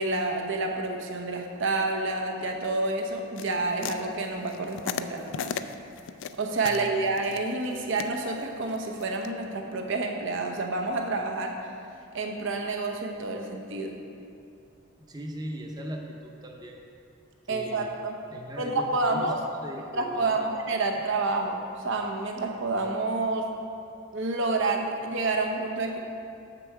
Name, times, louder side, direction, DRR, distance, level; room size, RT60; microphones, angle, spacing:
voice 1, 0.0-5.6 6.4-11.7 12.1-14.0 17.5-18.1 18.6-19.4 19.9-23.5 24.1-26.0, right 3 dB, 60° right, 3 dB, 0.8 m, -29 dB
sound 1, 3.4-9.3, left 7 dB, 60° left, 0.3 m, -37 dB
voice 2, 6.6-7.0 15.1-16.8 17.4-17.9 18.3-20.5 20.8-20.9, equal, 20° right, 2 dB, 0.7 m, -39 dB
7.4 x 6.8 x 4.7 m, 2.6 s
head